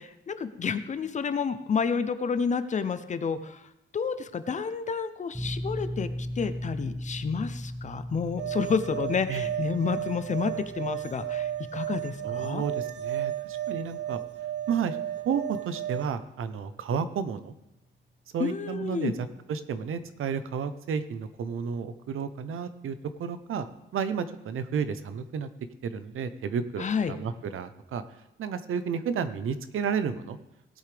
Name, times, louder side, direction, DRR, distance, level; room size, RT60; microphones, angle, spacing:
voice 1, 0.0-3.6 3.9-6.1 6.4-12.6 18.4-19.1 26.8-27.1, left 5 dB, 35° left, 12 dB, 0.6 m, -30 dB
sound 1, 5.3-19.8, equal, 5° right, 1.0 m, -40 dB
sound 2, 8.4-16.0, right 12 dB, 55° right, 0.5 m, -34 dB
voice 2, 12.2-14.2 14.7-15.0 15.2-17.5 18.3-23.7 23.9-25.5 25.8-28.0 28.4-30.4, right 6 dB, 80° right, 12 dB, 0.8 m, -32 dB
17.5 x 8.3 x 3.4 m, 0.87 s
wide cardioid pair, 180°, 21 cm